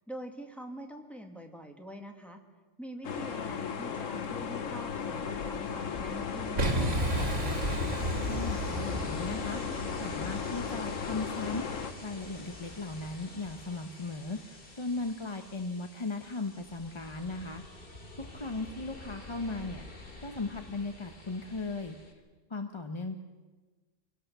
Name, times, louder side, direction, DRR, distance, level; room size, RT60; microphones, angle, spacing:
voice 1, 0.1-2.4 2.8-7.6, equal, ahead, 3 dB, 1.9 m, -45 dB
sound 1, 3.0-11.9, left 7 dB, 85° left, 1.5 m, -36 dB
Ocean, 4.9-22.1, left 2 dB, 45° left, 2.6 m, -45 dB
Boom, 6.6-9.5, right 1 dB, 75° right, 2.2 m, -31 dB
voice 2, 8.2-11.7 12.0-22.2 22.5-23.1, left 3 dB, 25° left, 6 dB, 0.9 m, -37 dB
25.0 x 17.5 x 6.8 m, 1.3 s
omnidirectional pair, 1.3 m